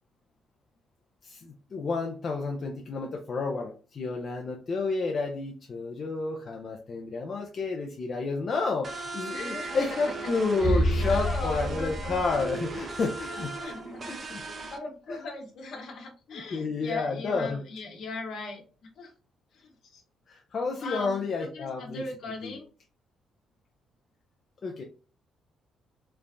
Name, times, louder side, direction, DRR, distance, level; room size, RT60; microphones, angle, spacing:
voice 1, 1.2-13.7 14.1-14.4 15.1-15.2 16.3-17.6 20.3-22.6 24.6-24.8, left 4 dB, 45° left, 1 dB, 0.5 m, -31 dB
sound 1, 8.8-14.8, right 4 dB, 40° right, 0.5 m, -38 dB
voice 2, 9.3-10.3 10.6-12.4 13.3-14.1 14.4-18.6 19.0-19.1 19.5-20.0 20.8-22.7, left 3 dB, 70° left, 2 dB, 1.0 m, -39 dB
sound 2, 10.6-13.2, equal, 25° left, 1.1 m, -28 dB
3.2 x 2.1 x 2.5 m, 0.36 s
cardioid pair, 90°, 0 cm